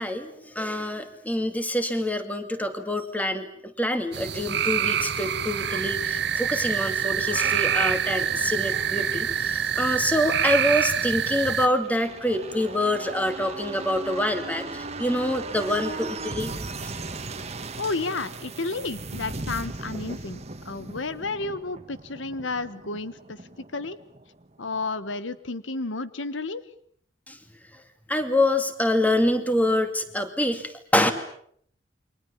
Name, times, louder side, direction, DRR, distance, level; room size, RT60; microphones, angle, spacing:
voice 1, 0.0-3.5 3.8-16.5 16.8-16.9 27.3-27.4 28.1-31.1, left 1 dB, 10° left, 8 dB, 2.5 m, -26 dB
sound 1, 4.1-11.7, right 8 dB, 60° right, 1.4 m, -26 dB
sound 2, 11.3-24.8 25.1-25.2, right 3 dB, 35° right, 1.6 m, -37 dB
voice 2, 17.8-23.4 23.7-24.0 24.6-26.6, left 3 dB, 90° left, 15 dB, 1.3 m, -31 dB
29.0 x 24.0 x 7.3 m, 0.64 s
head